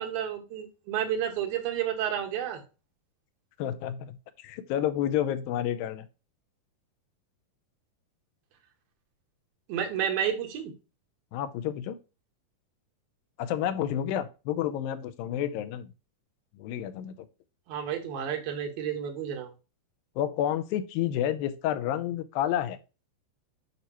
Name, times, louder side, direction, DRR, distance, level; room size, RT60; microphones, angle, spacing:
voice 1, 0.0-2.6 9.7-10.7 17.7-19.5, right 9 dB, 85° right, 3 dB, 3.2 m, -31 dB
voice 2, 3.6-6.1 11.3-12.0 13.4-15.9 16.6-17.1 20.2-22.8, left 11 dB, 85° left, 12 dB, 2.4 m, -30 dB
9.4 x 4.5 x 2.9 m, 0.31 s
omnidirectional pair, 4.1 m